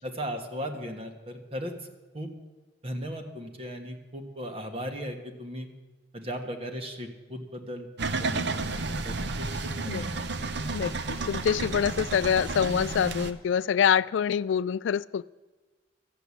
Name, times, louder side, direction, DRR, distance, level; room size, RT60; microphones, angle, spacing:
voice 1, 0.0-1.9 2.1-2.3 2.8-5.7 6.1-10.2, equal, 30° right, 4 dB, 1.4 m, -37 dB
sound 1, 8.0-13.3, right 3 dB, 65° right, 0.8 m, -32 dB
voice 2, 10.7-15.3, left 8 dB, 80° left, 19 dB, 0.3 m, -26 dB
13.5 x 8.1 x 8.4 m, 1.2 s
head